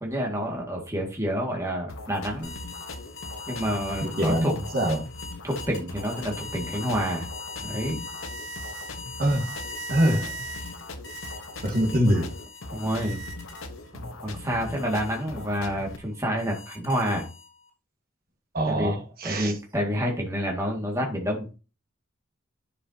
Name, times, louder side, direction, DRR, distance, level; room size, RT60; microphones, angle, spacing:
voice 1, 0.0-2.5 3.5-4.5 5.4-7.3 7.6-8.0 12.7-13.2 13.9-17.3 18.7-19.0 19.2-21.5, equal, 15° right, 2.0 m, -28 dB
sound 1, 1.9-16.0, left 2 dB, 85° left, 1.0 m, -40 dB
sound 2, 2.4-13.9 14.3-17.7, left 1 dB, 60° left, 3.9 m, -40 dB
voice 2, 4.0-5.1 9.2-9.5 9.9-10.4 11.6-12.3 18.5-19.5, equal, 45° right, 1.6 m, -24 dB
10.5 x 6.6 x 2.8 m
head